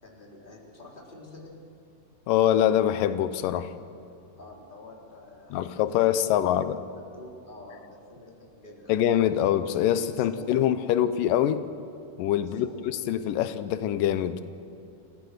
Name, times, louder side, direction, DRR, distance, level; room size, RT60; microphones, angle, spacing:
voice 1, 0.0-1.6 4.4-5.6 5.9-6.5 6.9-9.1 10.1-11.2 12.4-12.9, left 1 dB, 15° left, -2 dB, 3.5 m, -47 dB
voice 2, 2.3-3.8 5.5-6.8 8.9-11.6 12.2-12.7 13.1-14.4, left 11 dB, 90° left, 12 dB, 2.4 m, -24 dB
28.5 x 15.5 x 6.6 m, 2.8 s
omnidirectional pair, 3.8 m